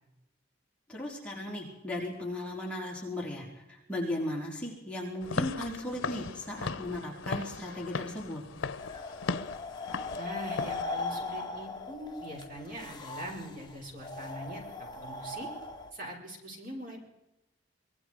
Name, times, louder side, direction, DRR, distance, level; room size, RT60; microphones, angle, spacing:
voice 1, 0.9-8.4, left 1 dB, 5° left, -4 dB, 4.4 m, -36 dB
Walk footsteps / Siren, 5.2-10.8, left 4 dB, 90° left, 0.7 m, -37 dB
sound 1, 8.8-15.9, left 3 dB, 20° left, 2.3 m, -39 dB
voice 2, 10.2-15.5 15.9-17.0, equal, 45° right, 0 dB, 6.3 m, -42 dB
25.0 x 21.0 x 4.8 m, 0.94 s
head